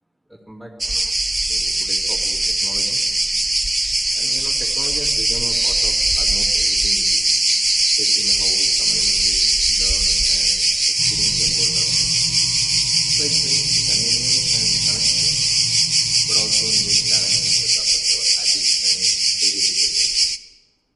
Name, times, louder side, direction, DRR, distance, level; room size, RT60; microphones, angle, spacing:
voice 1, 0.3-0.8 1.5-3.0 4.1-7.2 7.9-9.4 9.7-12.2 13.1-15.4 16.2-20.1, equal, ahead, -7 dB, 2.5 m, -38 dB
sound 1, 0.8-20.4, right 2 dB, 25° right, 0.5 m, -19 dB
sound 2, 11.0-17.7, left 4 dB, 55° left, 0.8 m, -35 dB
16.0 x 12.0 x 4.7 m, 1.4 s
cardioid pair, 60°, 0 cm